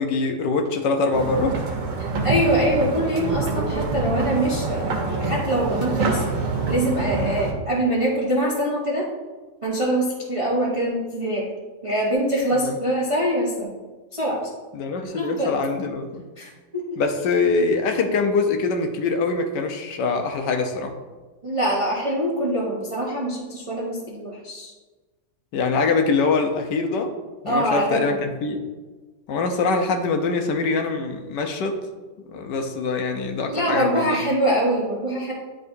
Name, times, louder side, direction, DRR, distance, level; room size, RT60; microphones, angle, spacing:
voice 1, 0.0-1.6 12.5-12.8 14.7-16.2 17.0-20.9 25.5-27.1 27.4-28.6 29.3-31.8 32.2-34.2, left 4 dB, 75° left, 5 dB, 1.3 m, -23 dB
sound 1, 1.1-7.5, right 3 dB, 80° right, 1.6 m, -26 dB
voice 2, 2.0-6.2 6.7-9.1 9.6-11.5 11.8-13.7 14.1-14.4 15.1-15.5 16.4-16.8 21.4-24.7 27.4-28.2 33.5-35.3, right 1 dB, 35° right, -4 dB, 0.5 m, -24 dB
10.0 x 3.7 x 2.6 m, 1.3 s
omnidirectional pair, 1.9 m